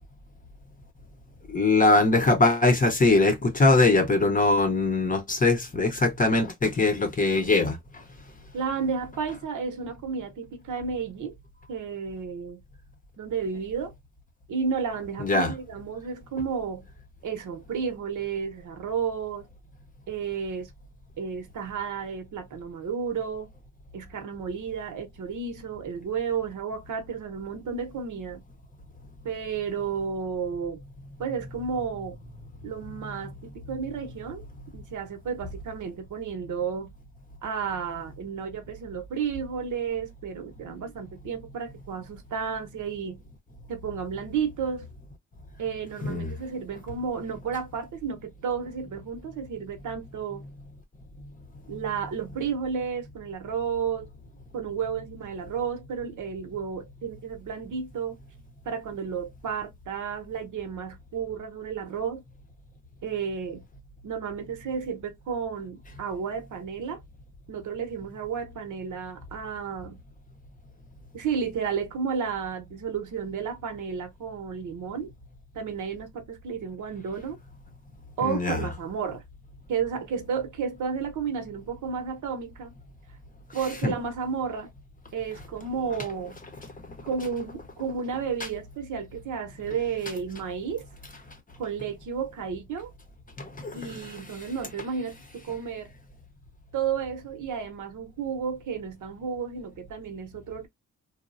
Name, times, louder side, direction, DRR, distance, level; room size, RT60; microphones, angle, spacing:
voice 1, 1.5-7.8 15.2-15.5 46.0-46.3 78.2-78.7 83.8-83.9 93.4-94.1, left 2 dB, 25° left, 0.7 m, -22 dB
voice 2, 8.5-11.4 11.7-12.6 13.2-13.9 14.5-16.9 17.2-19.5 20.1-20.7 21.2-23.5 23.9-28.4 29.2-30.8 31.2-32.2 32.6-34.4 34.7-36.9 37.4-43.2 43.7-44.9 45.6-50.5 51.7-54.1 54.5-58.2 58.7-62.2 63.0-63.6 64.0-67.0 67.5-70.0 71.1-75.1 75.5-77.4 78.2-79.2 79.7-82.8 83.5-84.7 85.1-86.4 87.0-90.9 91.6-92.9 93.7-95.9 96.7-100.7, right 6 dB, 75° right, 0.8 m, -32 dB
3.0 x 2.1 x 2.5 m
cardioid pair, 105°, 31 cm